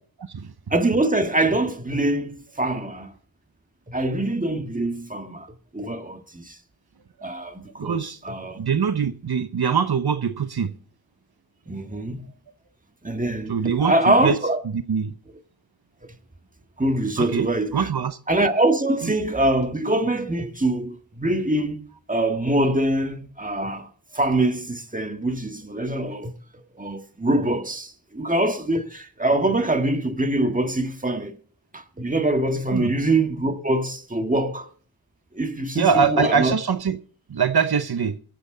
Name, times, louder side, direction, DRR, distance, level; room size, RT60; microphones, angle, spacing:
voice 1, 0.2-0.5 7.4-7.5 7.8-8.2 8.6-10.7 11.9-12.0 13.5-14.4 14.6-15.1 17.2-18.2 19.0-19.1 32.7-32.9 35.8-37.0 37.3-38.2, right 6 dB, 75° right, 0.8 m, -23 dB
voice 2, 0.7-3.1 3.9-5.5 5.7-6.5 7.2-8.6 11.7-12.3 13.0-14.6 16.8-17.9 18.3-21.8 22.1-23.9 24.1-26.3 26.8-31.3 31.7-34.7 35.3-36.5, right 1 dB, 20° right, 1.7 m, -24 dB
23.5 x 7.8 x 3.9 m
wide cardioid pair, 50°, 38 cm